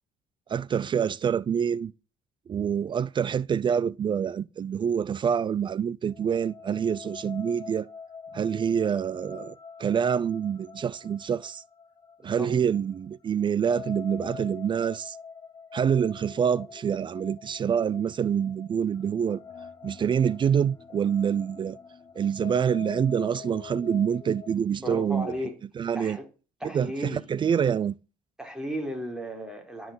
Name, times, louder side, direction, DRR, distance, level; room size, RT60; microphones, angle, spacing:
voice 1, 0.5-1.9 2.5-7.9 8.3-9.5 9.8-11.6 12.2-15.2 15.7-19.4 19.8-21.8 22.2-25.3 25.8-26.2 26.6-27.9, right 7 dB, 35° right, 0.5 m, -26 dB
sound 1, 6.1-24.5, left 6 dB, 25° left, 1.8 m, -45 dB
voice 2, 12.2-12.5 24.8-25.6 25.9-26.3 26.6-27.2 28.4-29.9, equal, 5° right, 4.4 m, -35 dB
12.5 x 5.8 x 9.4 m
cardioid pair, 105°, 13 cm